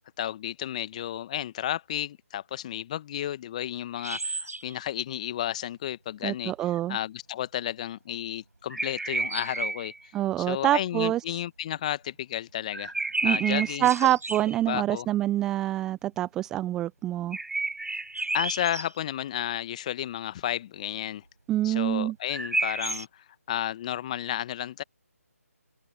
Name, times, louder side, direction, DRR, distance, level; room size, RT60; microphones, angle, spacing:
voice 1, 0.2-9.9 10.4-12.9 13.2-13.9 14.6-15.1 18.3-21.2 21.6-24.8, left 11 dB, 25° left, 1.3 m, -32 dB
sound 1, 4.0-4.7 8.7-10.0 12.7-14.6 17.3-18.9 22.3-23.0, right 2 dB, 80° right, 6.0 m, -31 dB
voice 2, 6.2-7.0 10.1-11.4 13.2-17.4 21.5-22.2, right 13 dB, 5° right, 0.3 m, -26 dB
open air
figure-of-eight pair, 155°, 8 cm